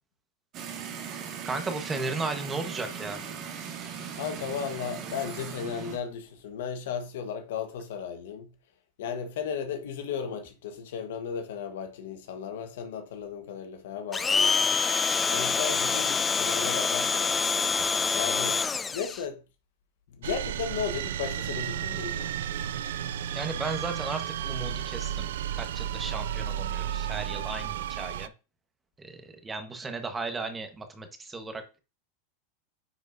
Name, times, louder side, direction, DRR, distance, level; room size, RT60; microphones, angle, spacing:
sound 1, 0.5-6.0, right 7 dB, 45° right, 2.0 m, -39 dB
voice 1, 1.4-3.2 23.3-28.3 29.0-31.8, right 3 dB, 15° right, 1.3 m, -35 dB
voice 2, 4.1-8.5 9.0-14.8 15.3-17.4 18.1-18.6 18.9-19.4 20.1-22.3, left 7 dB, 75° left, 1.4 m, -35 dB
Domestic sounds home sounds, 14.1-19.2, left 5 dB, 20° left, 0.3 m, -26 dB
sound 2, 20.2-28.3, right 10 dB, 80° right, 0.4 m, -33 dB
9.5 x 4.8 x 2.7 m
hypercardioid pair, 120°, 0 cm